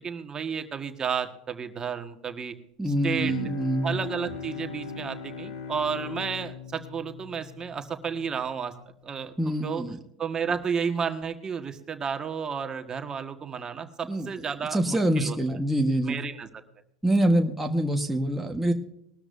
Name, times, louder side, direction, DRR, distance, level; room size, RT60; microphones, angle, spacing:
voice 1, 0.0-2.5 2.8-3.3 3.8-8.7 9.0-9.8 10.2-15.6 16.1-16.6, right 6 dB, 30° right, 6 dB, 1.5 m, -32 dB
voice 2, 2.8-4.0 9.4-10.0 14.1-14.3 14.7-16.2 17.0-18.7, right 1 dB, 5° right, 2 dB, 1.3 m, -25 dB
Bowed string instrument, 3.1-8.6, left 3 dB, 75° left, 2.8 m, -38 dB
20.5 x 13.0 x 2.6 m, 0.77 s
hypercardioid pair, 100°, 3 cm